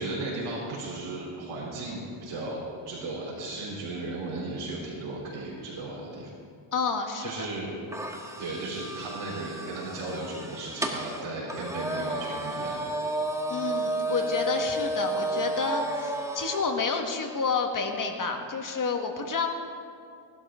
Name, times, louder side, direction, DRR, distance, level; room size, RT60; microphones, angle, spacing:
voice 1, 0.0-6.3 7.2-7.7 8.4-12.8, right 2 dB, 70° right, -7 dB, 3.8 m, -35 dB
voice 2, 6.7-7.3 13.5-19.5, left 4 dB, 40° left, 4 dB, 1.8 m, -29 dB
sound 1, 7.9-16.7, right 1 dB, 5° right, 1.5 m, -32 dB
18.5 x 12.0 x 3.8 m, 2.4 s
cardioid pair, 90°, 49 cm